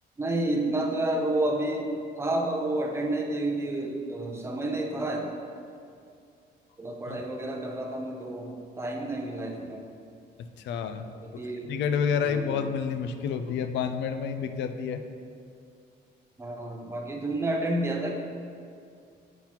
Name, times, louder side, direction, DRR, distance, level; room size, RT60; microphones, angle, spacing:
voice 1, 0.2-5.3 6.8-9.8 11.2-11.7 12.2-12.6 16.4-18.1, right 1 dB, 15° right, 0 dB, 0.5 m, -30 dB
voice 2, 10.6-11.1 11.7-15.0, left 7 dB, 80° left, 8 dB, 0.4 m, -29 dB
7.3 x 5.8 x 2.9 m, 2.4 s
cardioid pair, 175°, 18 cm